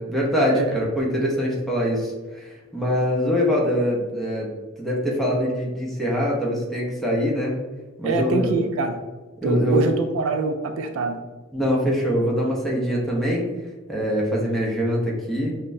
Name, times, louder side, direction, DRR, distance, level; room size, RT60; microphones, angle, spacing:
voice 1, 0.0-4.5 4.8-7.6 8.0-8.5 9.4-9.8 11.5-13.4 13.9-15.5, equal, ahead, -4 dB, 0.7 m, -23 dB
voice 2, 8.0-9.0 9.4-11.2, right 3 dB, 65° right, 6 dB, 0.4 m, -24 dB
5.7 x 2.1 x 2.6 m, 1.3 s
head